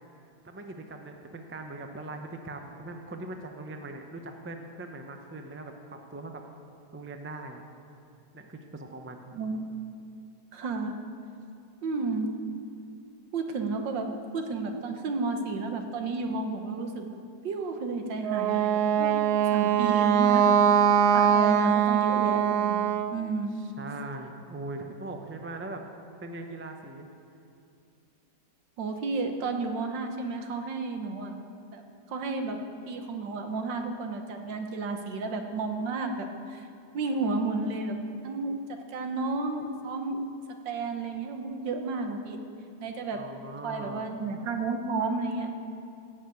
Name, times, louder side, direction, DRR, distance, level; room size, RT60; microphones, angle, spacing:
voice 1, 0.4-6.4 6.9-7.6 8.3-9.3 23.8-25.8 26.2-27.1 43.1-44.1, right 2 dB, 20° right, 4 dB, 0.3 m, -40 dB
voice 2, 9.3-9.7 10.5-10.9 11.8-12.3 13.3-17.1 17.4-20.6 20.9-22.8 23.1-23.6 28.8-31.3 31.7-31.8 32.1-36.7 36.9-38.0 38.2-38.6 38.9-40.2 40.6-42.4 42.8-43.2 43.6-45.5, right 3 dB, 85° right, 5 dB, 1.8 m, -32 dB
Wind instrument woodwind instrument, 18.2-23.2, right 8 dB, 70° right, 1.0 m, -22 dB
16.5 x 6.2 x 8.4 m, 2.5 s
omnidirectional pair, 1.9 m